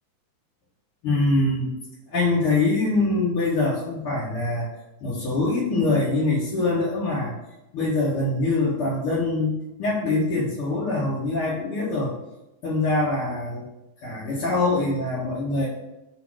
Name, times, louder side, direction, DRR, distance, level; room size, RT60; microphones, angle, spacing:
voice 1, 1.0-1.7 2.1-4.7 5.0-7.3 7.7-12.1 12.6-13.7 14.0-15.7, left 2 dB, 55° left, -8 dB, 1.8 m, -24 dB
8.1 x 2.8 x 6.2 m, 0.96 s
omnidirectional pair, 3.8 m